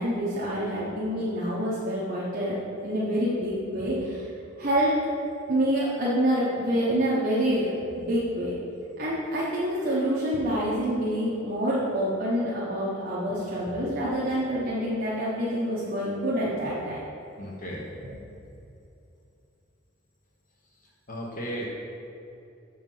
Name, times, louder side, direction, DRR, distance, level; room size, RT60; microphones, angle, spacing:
voice 1, 0.0-4.3 4.6-5.0 5.5-7.7 8.0-8.5 9.0-17.0 18.0-18.1, equal, 45° right, -8 dB, 1.1 m, -27 dB
voice 2, 17.4-17.8 21.1-21.7, equal, 45° left, -3 dB, 1.0 m, -35 dB
7.2 x 4.8 x 5.5 m, 2.7 s
head